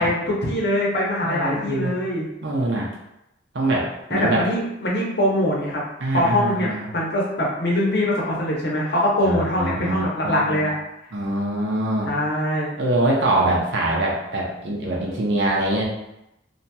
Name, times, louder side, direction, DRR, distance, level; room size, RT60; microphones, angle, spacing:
voice 1, 0.0-2.2 4.1-5.8 6.1-10.7 12.1-12.8, left 1 dB, 55° left, -4 dB, 0.7 m, -23 dB
voice 2, 1.2-1.9 2.4-2.9 3.5-4.4 6.0-6.9 9.2-10.6 11.1-12.1 12.8-15.8, right 1 dB, 60° right, -2 dB, 0.7 m, -24 dB
2.9 x 2.7 x 2.2 m, 0.87 s
head